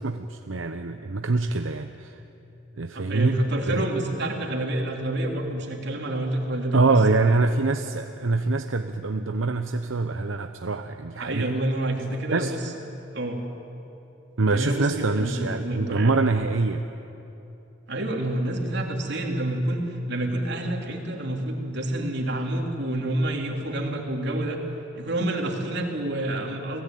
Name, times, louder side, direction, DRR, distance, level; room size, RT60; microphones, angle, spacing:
voice 1, 0.0-2.2 2.8-3.4 3.7-3.8 6.7-11.5 12.3-12.5 14.4-16.8, right 3 dB, 80° right, 6 dB, 0.9 m, -24 dB
voice 2, 2.9-7.0 11.2-12.7 13.1-13.4 14.5-16.2 17.9-24.6 24.9-26.8, right 1 dB, 60° right, 1 dB, 3.4 m, -28 dB
29.5 x 17.5 x 9.3 m, 2.9 s
head